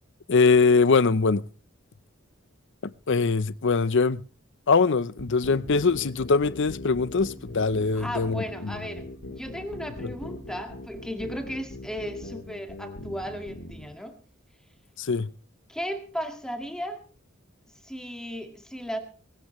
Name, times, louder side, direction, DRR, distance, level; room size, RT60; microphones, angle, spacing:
voice 1, 0.3-1.4 3.1-4.2 4.7-8.7 15.0-15.3, left 4 dB, 60° left, 0.7 m, -22 dB
sound 1, 5.2-13.9, left 1 dB, 85° left, 3.6 m, -40 dB
voice 2, 7.9-14.2 15.7-17.0 17.8-19.0, equal, 5° left, 1.9 m, -35 dB
20.0 x 16.5 x 3.1 m
head